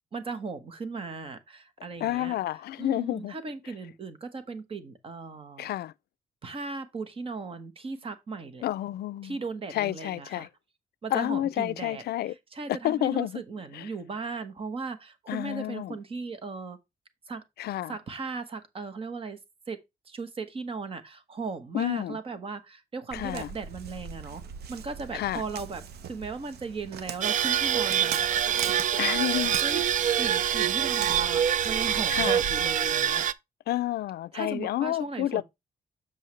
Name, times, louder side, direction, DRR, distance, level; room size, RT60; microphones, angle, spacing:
voice 1, 0.1-5.7 6.4-8.6 9.2-10.5 11.0-16.8 17.3-17.4 17.9-19.4 19.7-19.8 20.0-24.4 24.7-29.8 30.2-33.2 34.3-35.4, right 4 dB, 35° right, 1.1 m, -37 dB
voice 2, 2.0-3.3 5.6-5.9 8.6-9.3 9.7-10.5 11.1-12.3 12.8-13.4 13.7-13.8 15.3-15.9 17.6-18.0 21.7-22.2 23.1-23.5 25.1-25.4 29.0-29.6 32.1-32.4 33.7-35.4, left 14 dB, 80° left, 0.4 m, -29 dB
Walk footsteps, 23.1-32.7, right 7 dB, 80° right, 0.8 m, -41 dB
sound 1, 27.2-33.3, right 9 dB, 50° right, 0.4 m, -25 dB
7.7 x 6.4 x 3.1 m
wide cardioid pair, 175°, 16 cm